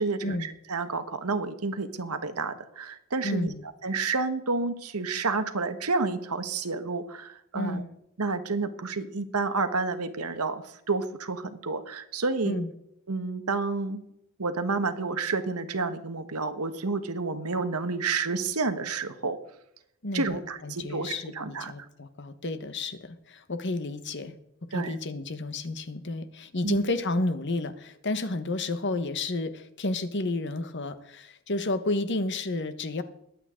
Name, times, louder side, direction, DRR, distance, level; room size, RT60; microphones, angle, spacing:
voice 1, 0.0-3.5 3.8-7.8 8.2-12.6 13.1-14.0 14.4-19.4 20.1-21.7 24.7-24.9 26.6-26.8, right 3 dB, 85° right, 9 dB, 1.4 m, -30 dB
voice 2, 3.2-3.6 7.5-7.9 12.4-12.7 20.0-24.3 24.7-33.0, left 2 dB, 55° left, 11 dB, 1.2 m, -31 dB
21.5 x 8.8 x 3.8 m, 0.76 s
head